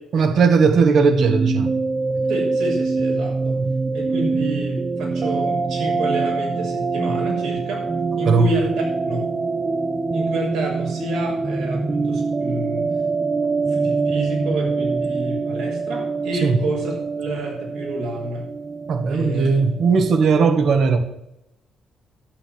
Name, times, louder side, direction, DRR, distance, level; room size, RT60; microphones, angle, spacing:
voice 1, 0.1-1.7 3.6-3.7 8.2-8.5 16.4-16.6 18.9-21.0, right 5 dB, 60° right, 1.7 m, -17 dB
sound 1, 0.8-20.3, right 4 dB, 25° right, 0.5 m, -24 dB
voice 2, 2.3-3.6 3.9-7.8 8.1-9.3 10.1-12.9 13.7-18.5 19.1-19.5, right 2 dB, 85° right, 6.5 m, -29 dB
11.5 x 8.6 x 8.2 m
cardioid pair, 90°, 0 cm